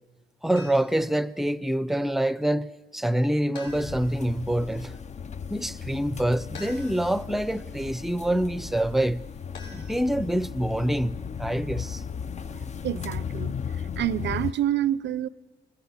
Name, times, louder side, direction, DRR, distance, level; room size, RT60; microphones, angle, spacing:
voice 1, 0.4-5.0 5.5-9.3 9.7-12.0, right 1 dB, ahead, 0.7 m, -26 dB
sound 1, 0.6-1.1 3.6-4.3 6.5-7.3 9.5-10.4, left 3 dB, 75° left, 7.6 m, -46 dB
sound 2, 3.7-14.5, left 6 dB, 35° left, 0.7 m, -36 dB
voice 2, 12.8-13.6 14.0-15.3, right 11 dB, 65° right, 0.7 m, -27 dB
29.5 x 19.0 x 8.3 m
cardioid pair, 90°, 20 cm